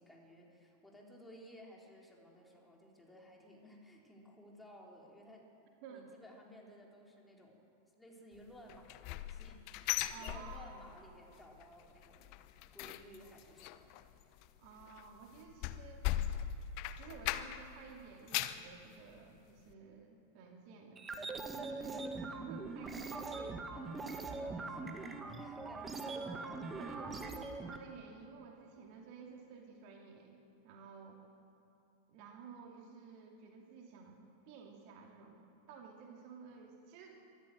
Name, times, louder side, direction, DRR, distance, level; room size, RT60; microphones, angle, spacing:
voice 1, 0.0-5.5 5.9-7.7 8.0-12.3 12.7-14.1 23.7-26.6, equal, 5° left, -1 dB, 4.1 m, -57 dB
sound 1, 8.7-11.0 11.3-11.7 12.0-17.8 18.1-18.7 19.2-19.3 19.7-19.8, left 13 dB, 45° left, 0.9 m, -39 dB
voice 2, 10.1-10.7 14.6-16.1 17.0-23.6 25.8-31.2 32.1-37.3, right 5 dB, 45° right, 1 dB, 2.6 m, -53 dB
sound 2, 21.0-27.8, right 3 dB, 15° right, 1.7 m, -42 dB
24.5 x 13.5 x 7.8 m, 2.7 s
figure-of-eight pair, 90°, 0 cm